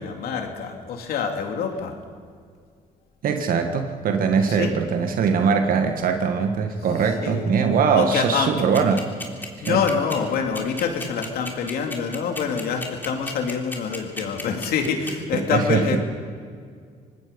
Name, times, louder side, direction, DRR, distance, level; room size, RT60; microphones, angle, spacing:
voice 1, 0.0-1.9 4.5-4.7 7.2-7.5 7.9-8.5 9.6-16.0, left 6 dB, 75° left, 3 dB, 2.9 m, -26 dB
voice 2, 3.2-9.1 9.7-9.8 15.5-16.0, right 6 dB, 65° right, 6 dB, 1.8 m, -21 dB
sound 1, 8.7-15.1, left 2 dB, 10° left, 3.4 m, -33 dB
25.0 x 19.5 x 5.4 m, 2.1 s
cardioid pair, 85°, 16 cm